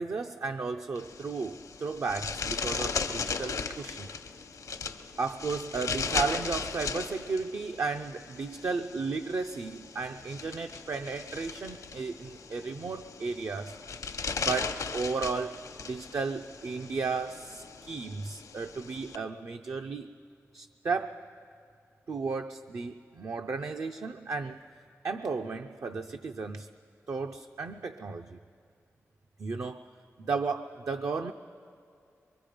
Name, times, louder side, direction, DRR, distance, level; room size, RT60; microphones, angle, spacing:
voice 1, 0.0-4.1 5.2-13.8 14.4-20.1 20.5-21.2 22.1-24.6 25.0-26.7 27.1-28.4 29.4-29.9 30.2-31.3, right 4 dB, 65° right, 5 dB, 0.6 m, -34 dB
sound 1, 1.0-19.2, left 5 dB, 85° left, 1.0 m, -37 dB
24.0 x 23.5 x 5.1 m, 2.4 s
cardioid pair, 65°, 6 cm